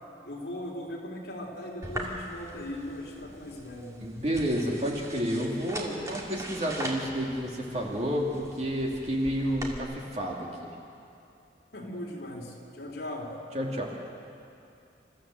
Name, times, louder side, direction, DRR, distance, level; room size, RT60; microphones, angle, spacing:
voice 1, 0.2-4.0 11.7-13.3, left 1 dB, 60° left, -1 dB, 3.8 m, -39 dB
sound 1, 1.8-9.8, right 1 dB, 15° right, 2.2 m, -41 dB
voice 2, 4.0-10.8 13.5-13.9, equal, 35° right, -1 dB, 2.6 m, -30 dB
28.0 x 14.0 x 7.7 m, 2.6 s
head